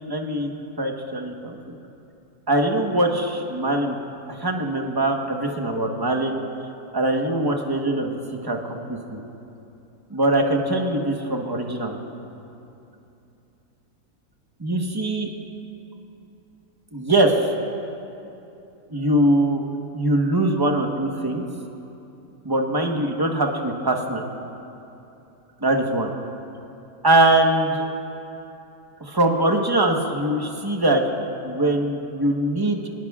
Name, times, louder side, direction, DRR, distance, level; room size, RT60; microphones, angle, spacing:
voice 1, 0.1-1.7 2.5-4.0 4.3-6.4 6.9-8.2 8.4-9.2 10.1-12.0 14.6-15.3 16.9-17.4 18.9-19.6 19.9-21.5 22.4-24.3 25.6-26.1 27.0-27.8 29.0-31.0 31.4-32.9, right 1 dB, 15° right, 2 dB, 1.0 m, -22 dB
24.5 x 19.5 x 2.4 m, 2.8 s
omnidirectional pair, 1.7 m